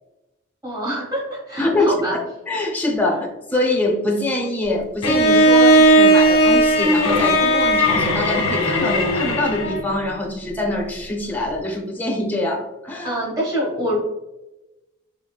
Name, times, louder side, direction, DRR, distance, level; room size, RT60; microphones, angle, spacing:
voice 1, 0.6-2.2 13.0-14.0, right 1 dB, 20° right, -5 dB, 1.3 m, -25 dB
voice 2, 1.6-2.0 2.5-13.1, left 1 dB, 10° left, 0 dB, 0.6 m, -24 dB
Bowed string instrument, 5.0-9.9, right 1 dB, 85° left, 0.7 m, -16 dB
3.8 x 3.0 x 2.3 m, 0.99 s
head